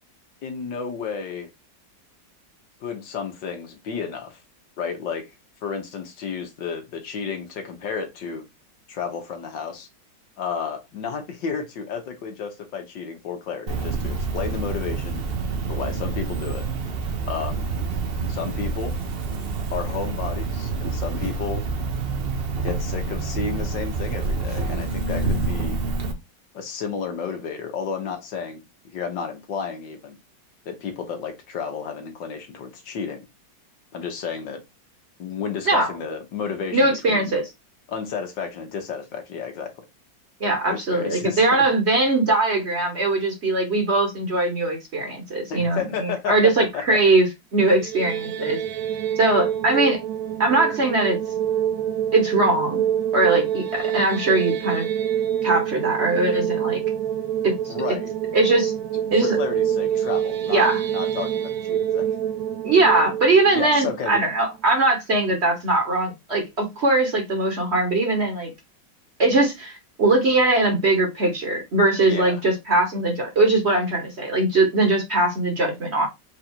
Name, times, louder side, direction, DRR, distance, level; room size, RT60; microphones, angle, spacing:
voice 1, 0.4-1.5 2.8-4.4 4.8-5.3 5.6-8.4 8.9-9.9 10.4-15.2 15.7-16.6 17.3-17.7 18.3-19.0 19.7-21.6 22.6-25.8 26.5-30.2 30.6-33.2 33.9-34.6 35.2-37.3 37.9-39.7 40.7-41.5 45.5-46.3 46.9-47.0 47.6-47.8 57.7-58.1 59.3-62.1 63.5-64.2 72.0-72.4, left 6 dB, 75° left, 1.7 m, -32 dB
Cricket, 13.7-26.1, right 4 dB, 55° right, 0.6 m, -27 dB
voice 2, 36.7-37.5 40.4-47.3 47.5-48.6 49.2-50.0 50.4-51.2 52.1-52.8 53.1-54.9 55.4-56.8 57.4-57.7 58.3-58.7 59.1-59.4 60.5-60.8 62.6-68.5 69.2-76.1, right 2 dB, 40° right, 1.3 m, -21 dB
sound 1, 47.8-64.8, right 10 dB, 80° right, 1.3 m, -26 dB
4.6 x 2.6 x 4.4 m
omnidirectional pair, 2.0 m